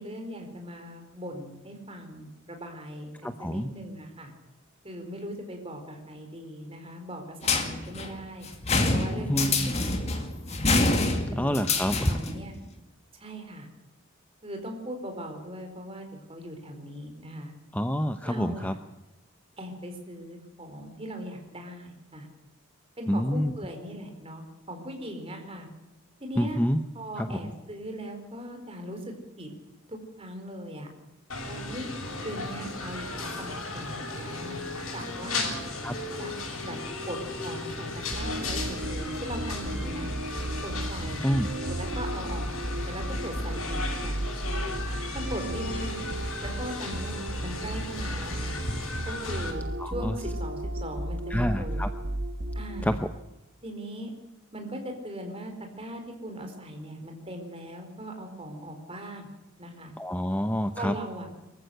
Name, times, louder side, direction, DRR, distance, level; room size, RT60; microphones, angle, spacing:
voice 1, 0.0-4.3 4.8-8.5 8.9-10.6 11.3-11.7 12.0-12.5 13.1-13.7 14.4-17.5 18.2-18.8 19.6-22.3 23.0-25.7 26.2-26.6 26.9-29.5 29.9-30.9 31.5-31.9 32.2-35.6 36.2-36.3 36.6-36.8 37.1-40.1 40.6-41.2 41.7-42.5 42.9-44.2 45.1-46.1 46.4-48.6 49.1-49.6 49.9-51.8 52.5-53.0 53.6-54.1 54.5-59.3 59.6-59.9 60.7-61.3, equal, 25° right, 4 dB, 4.4 m, -39 dB
voice 2, 3.2-3.7 9.1-9.7 11.3-12.1 17.7-18.7 23.1-23.5 26.4-26.8 27.2-27.4 35.8-35.9 41.2-41.5 49.8-50.1 51.3-51.9 52.8-53.0 60.0-60.9, equal, 5° left, 8 dB, 0.7 m, -27 dB
sound 1, 7.4-12.4, left 3 dB, 30° left, 2.2 m, -26 dB
sound 2, 31.3-49.5, left 2 dB, 85° left, 6.7 m, -36 dB
sound 3, 38.1-53.3, right 1 dB, 55° right, 1.3 m, -34 dB
23.5 x 14.5 x 8.0 m, 1.0 s
head